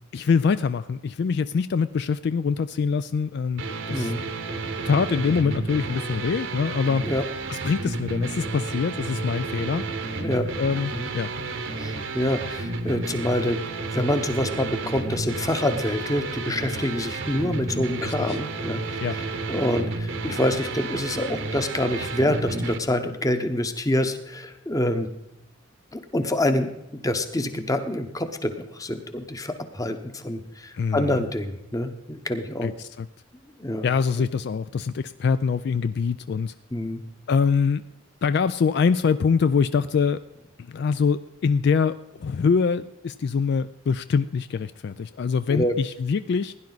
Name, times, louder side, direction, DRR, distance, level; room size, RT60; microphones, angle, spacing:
voice 1, 0.1-3.6 3.9-4.1 4.9-7.1 7.5-9.8 10.6-11.3 18.0-18.4 19.0-19.2 30.8-31.2 32.6-33.1 33.8-36.5 37.3-37.8 38.2-40.2 40.7-46.5, left 5 dB, 55° left, 13 dB, 0.3 m, -24 dB
sound 1, 3.6-22.8, right 3 dB, 75° right, 1.1 m, -31 dB
voice 2, 3.9-4.2 7.0-7.2 10.2-10.5 10.9-11.1 11.8-13.6 13.9-19.2 19.5-25.1 25.9-32.7 33.6-33.9 36.7-37.0 45.5-45.7, left 1 dB, 20° left, 8 dB, 0.9 m, -26 dB
16.5 x 10.5 x 4.0 m, 0.88 s
head